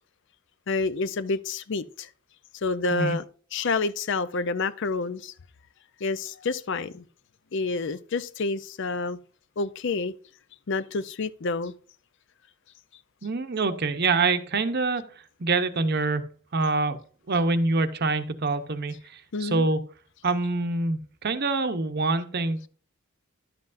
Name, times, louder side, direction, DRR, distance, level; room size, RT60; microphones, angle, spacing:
voice 1, 0.7-2.1 2.6-3.2 3.5-5.3 6.0-7.0 7.5-9.2 9.6-10.1 10.7-11.7 19.3-19.7, left 3 dB, 60° left, 0.5 m, -28 dB
voice 2, 13.2-15.0 15.4-16.3 16.5-17.0 17.3-19.8 20.2-22.7, right 3 dB, 50° right, 0.8 m, -25 dB
11.5 x 7.7 x 2.6 m
head